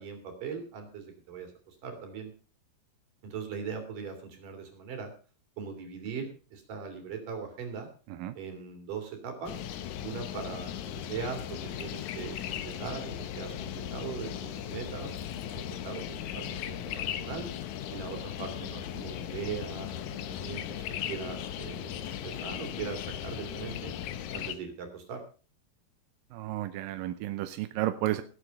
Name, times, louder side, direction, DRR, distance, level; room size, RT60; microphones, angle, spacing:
voice 1, 0.0-2.3 3.2-5.1 5.6-7.9 8.3-9.6 10.0-15.2 15.5-17.5 17.9-23.9 24.3-25.2, right 6 dB, 60° right, 5 dB, 4.6 m, -40 dB
sound 1, 9.5-24.6, left 10 dB, 70° left, 1.8 m, -37 dB
voice 2, 26.3-28.2, right 14 dB, 75° right, 10 dB, 2.2 m, -32 dB
18.5 x 8.1 x 5.4 m, 0.37 s
omnidirectional pair, 4.5 m